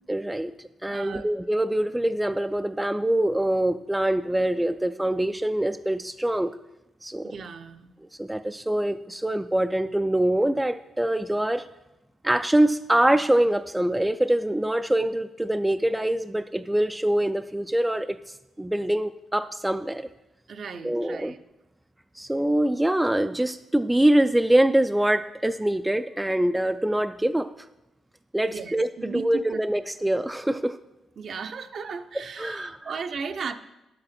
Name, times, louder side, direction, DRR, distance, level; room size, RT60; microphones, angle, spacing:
voice 1, 0.1-0.5 0.8-6.5 7.0-7.3 8.2-11.6 12.2-18.2 18.6-20.1 20.8-21.3 22.2-27.5 28.3-30.8 32.1-32.9, right 1 dB, 10° right, 9 dB, 0.3 m, -24 dB
voice 2, 0.9-1.2 7.2-7.9 20.5-21.4 28.5-29.6 31.2-33.6, right 5 dB, 55° right, 9 dB, 0.6 m, -36 dB
10.5 x 7.8 x 4.2 m, 0.96 s
cardioid pair, 100°, 0 cm